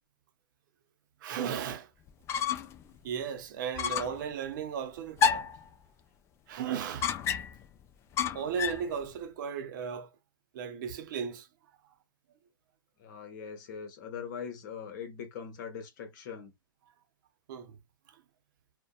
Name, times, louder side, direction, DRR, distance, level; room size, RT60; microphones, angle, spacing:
voice 1, 1.2-1.9 3.0-5.5 6.5-7.1 8.3-10.1 10.5-11.5 17.5-17.8 18.1-18.2, right 7 dB, 60° right, 0.6 m, -35 dB
sound 1, 2.1-2.8 3.1-3.2 3.8-4.2 5.2-5.6 7.0-7.6 8.2-8.9, left 7 dB, 25° left, 0.3 m, -29 dB
voice 2, 13.0-16.5, left 7 dB, 55° left, 1.0 m, -41 dB
2.6 x 2.2 x 2.2 m
hypercardioid pair, 125°, 12 cm